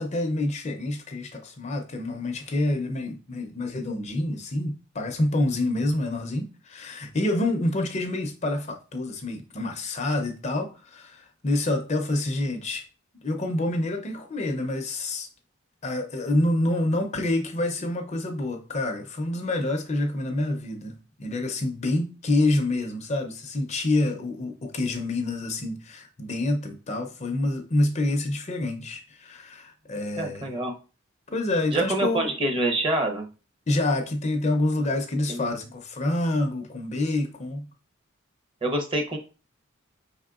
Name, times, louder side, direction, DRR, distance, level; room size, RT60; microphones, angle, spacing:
voice 1, 0.0-12.8 13.2-15.3 15.8-30.6 31.3-32.3 33.7-37.7, left 2 dB, 35° left, 0.5 m, -27 dB
voice 2, 30.2-30.7 31.7-33.3 35.3-35.5 38.6-39.2, right 1 dB, 25° right, 0.7 m, -26 dB
5.2 x 3.6 x 2.4 m
head